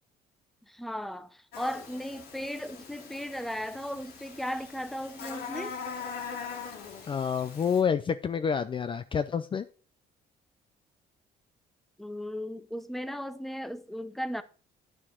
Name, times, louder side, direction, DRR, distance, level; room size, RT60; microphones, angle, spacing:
voice 1, 0.7-5.8 12.0-14.4, equal, ahead, 0.7 m, -36 dB
Buzz, 1.5-7.8, left 6 dB, 70° left, 2.5 m, -42 dB
voice 2, 7.1-9.6, left 7 dB, 30° left, 0.5 m, -28 dB
9.8 x 6.2 x 4.6 m
cardioid pair, 110°, 17 cm